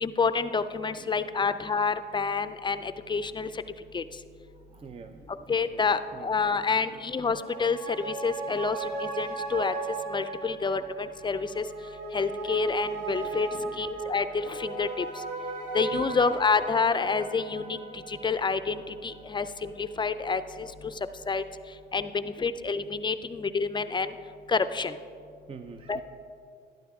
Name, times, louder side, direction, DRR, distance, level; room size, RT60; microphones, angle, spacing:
voice 1, 0.0-3.5 3.9-4.0 5.5-9.7 10.1-11.6 12.1-13.5 13.8-15.1 15.7-17.8 18.1-20.7 21.3-21.4 21.9-24.1 24.5-24.9 25.9-26.0, left 5 dB, 25° left, 11 dB, 0.4 m, -28 dB
voice 2, 4.5-6.3 6.9-7.0 8.5-8.6 13.5-13.8 15.9-16.2 22.1-22.3 25.5-26.0, right 5 dB, 30° right, 7 dB, 0.5 m, -47 dB
sound 1, 7.1-20.0 20.3-20.4, right 3 dB, 60° right, 1.9 m, -37 dB
11.5 x 11.5 x 3.6 m, 2.4 s
cardioid pair, 90°, 20 cm